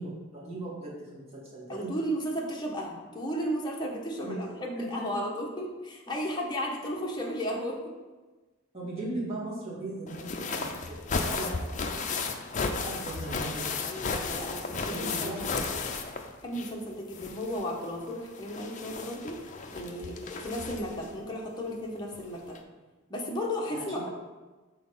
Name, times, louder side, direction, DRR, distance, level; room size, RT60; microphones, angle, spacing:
voice 1, 0.0-1.9 4.2-4.4 4.7-5.0 8.7-12.4 12.7-13.8 14.9-15.6 23.7-23.8, right 2 dB, 30° right, -6 dB, 2.1 m, -38 dB
voice 2, 1.7-7.8 13.8-15.6 16.4-19.4 19.7-22.6 23.1-24.1, equal, 20° left, -2 dB, 1.0 m, -34 dB
sound 1, 10.1-16.8 17.1-21.1 22.1-22.2 22.6-22.7, left 4 dB, 35° left, 0.5 m, -34 dB
6.1 x 4.0 x 5.5 m, 1.2 s
head